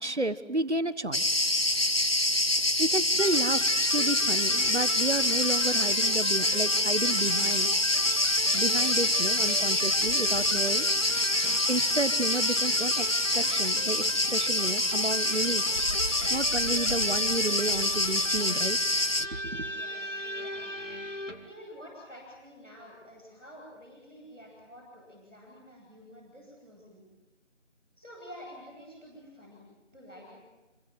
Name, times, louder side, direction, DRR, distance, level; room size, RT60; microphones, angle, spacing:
voice 1, 0.0-1.4 2.8-7.7 8.5-10.9 11.7-13.1 13.3-15.6 16.3-18.8 19.5-19.7, right 2 dB, 65° right, 14 dB, 1.3 m, -31 dB
Cricket, 1.1-19.3, left 1 dB, 50° left, 0.9 m, -26 dB
Electric guitar, 3.1-21.5, left 1 dB, 75° left, 2.6 m, -38 dB
voice 2, 19.7-20.8 21.4-27.1 27.9-29.6 29.9-30.4, equal, 5° right, -19 dB, 5.4 m, -49 dB
28.0 x 23.5 x 7.8 m, 1.1 s
figure-of-eight pair, 180°, 37 cm